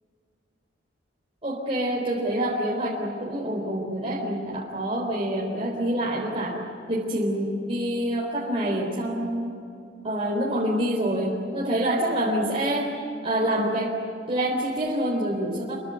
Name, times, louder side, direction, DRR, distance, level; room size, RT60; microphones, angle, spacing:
voice 1, 1.4-6.6 6.9-9.6 10.0-12.9 13.2-14.0 14.3-15.8, right 1 dB, 30° right, -3 dB, 3.9 m, -26 dB
27.5 x 22.5 x 8.1 m, 2.7 s
head